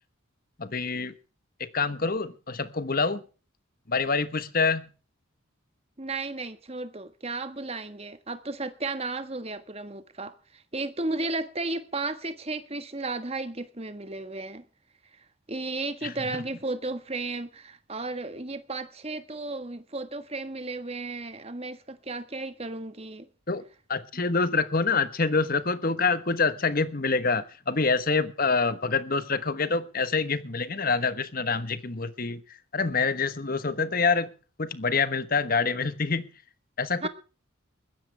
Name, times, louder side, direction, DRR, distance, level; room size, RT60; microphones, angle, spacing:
voice 1, 0.6-1.1 1.6-3.2 3.9-4.9 16.0-16.1 23.5-23.6 23.9-32.4 32.7-34.3 34.6-36.3 36.8-37.1, left 4 dB, 40° left, 1.2 m, -26 dB
voice 2, 6.0-14.6 15.5-23.3 37.0-37.1, right 2 dB, 30° right, 1.4 m, -34 dB
21.0 x 15.5 x 3.4 m
head